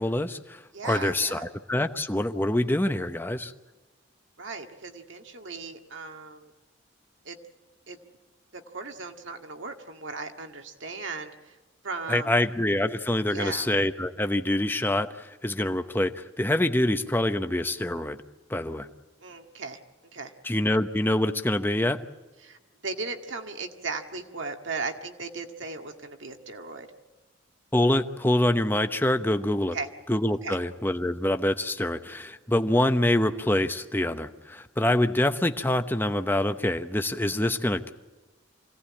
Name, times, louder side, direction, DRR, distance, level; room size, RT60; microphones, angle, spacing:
voice 1, 0.0-3.5 12.1-18.2 18.5-18.9 20.4-22.0 27.7-29.8 30.1-37.9, left 1 dB, 10° left, 8 dB, 0.9 m, -25 dB
voice 2, 0.7-1.4 4.4-6.5 7.3-7.4 7.9-8.0 8.5-11.6 11.8-12.3 13.3-13.7 19.2-19.8 20.1-20.3 22.4-22.6 22.8-26.9 29.7-29.9 30.4-30.6, right 4 dB, 70° right, 5 dB, 1.9 m, -37 dB
25.5 x 17.5 x 8.6 m, 1.2 s
head